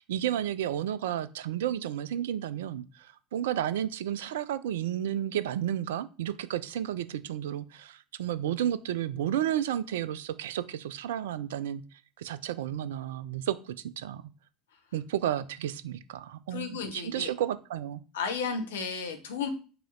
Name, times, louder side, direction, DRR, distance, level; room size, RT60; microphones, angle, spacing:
voice 1, 0.0-11.8 12.2-14.2 14.9-18.0, right 11 dB, 70° right, 0.3 m, -32 dB
voice 2, 16.5-17.3 18.1-19.5, left 5 dB, 70° left, 0.9 m, -33 dB
4.9 x 2.8 x 3.7 m
figure-of-eight pair, 70°, 0 cm